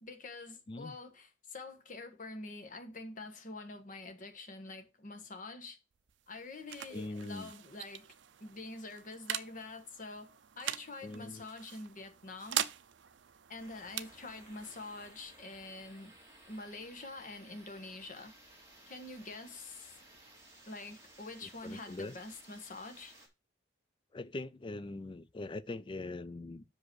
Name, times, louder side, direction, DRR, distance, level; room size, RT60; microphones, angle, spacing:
voice 1, 0.0-5.8 6.3-8.1 8.4-12.7 13.5-16.1 16.5-18.3 18.9-20.0 20.7-23.1, left 2 dB, 45° left, 1.3 m, -46 dB
sound 1, 5.9-17.3, right 11 dB, 70° right, 0.5 m, -43 dB
voice 2, 6.9-7.5 11.0-11.4 21.4-22.2 24.1-26.6, left 2 dB, 25° left, 0.4 m, -42 dB
sound 2, 13.6-23.3, right 1 dB, 15° right, 2.5 m, -58 dB
6.1 x 5.2 x 6.2 m
head